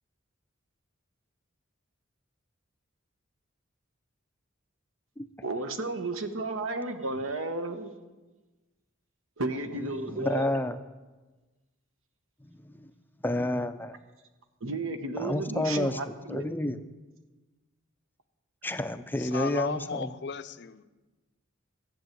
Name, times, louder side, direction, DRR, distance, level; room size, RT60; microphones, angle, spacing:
voice 1, 5.4-7.9 9.4-10.5 14.6-16.4, right 2 dB, 75° right, 8 dB, 1.2 m, -33 dB
voice 2, 10.2-10.8 12.5-12.9 13.2-14.0 15.2-16.0 16.3-16.8 18.6-20.1, left 1 dB, 10° left, 10 dB, 0.5 m, -30 dB
voice 3, 19.2-20.8, left 6 dB, 55° left, 12 dB, 0.6 m, -35 dB
14.0 x 7.3 x 9.3 m, 1.2 s
head